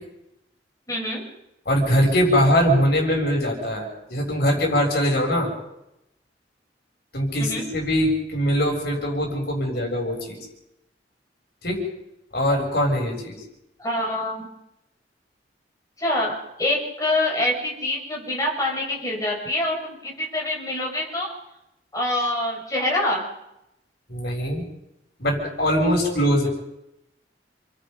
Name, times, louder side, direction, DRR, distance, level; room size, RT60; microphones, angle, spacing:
voice 1, 0.9-1.2 7.4-7.6 13.8-14.5 16.0-21.3 21.9-23.3, left 1 dB, 20° left, -2 dB, 7.7 m, -25 dB
voice 2, 1.7-5.5 7.1-10.4 11.6-11.8 12.3-13.4 24.1-24.6 25.2-26.5, equal, 60° left, 1 dB, 7.3 m, -22 dB
29.0 x 23.0 x 5.4 m, 0.87 s
head